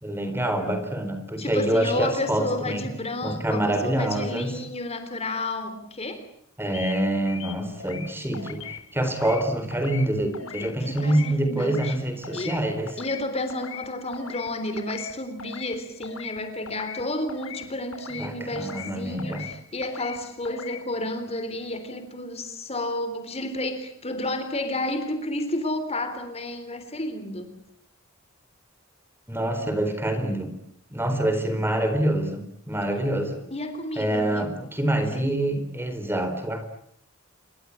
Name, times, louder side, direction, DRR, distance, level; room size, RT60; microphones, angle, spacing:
voice 1, 0.0-2.9 3.2-4.5 6.6-12.9 18.2-19.5 29.3-30.5 30.9-33.4 34.0-36.6, right 1 dB, 10° right, 8 dB, 4.3 m, -26 dB
voice 2, 1.4-6.2 10.4-11.9 12.3-12.6 13.0-27.5 33.5-34.5 35.1-35.3, left 1 dB, 30° left, 9 dB, 3.6 m, -31 dB
sound 1, 6.7-7.0 7.3-8.1 8.3-8.8 9.1-9.4 9.7-10.1 10.3-10.7 11.0-11.3 11.6-12.0 12.2-12.6 12.9-13.2 13.5-13.9 14.1-14.5 14.8-15.1 15.4-15.8 16.0-16.4 16.7-17.0 17.3-17.6 17.9-18.3 18.6-18.9 19.2-19.5 19.8-20.2 20.5-20.8, left 7 dB, 90° left, 4.1 m, -39 dB
28.0 x 23.5 x 8.8 m, 0.66 s
head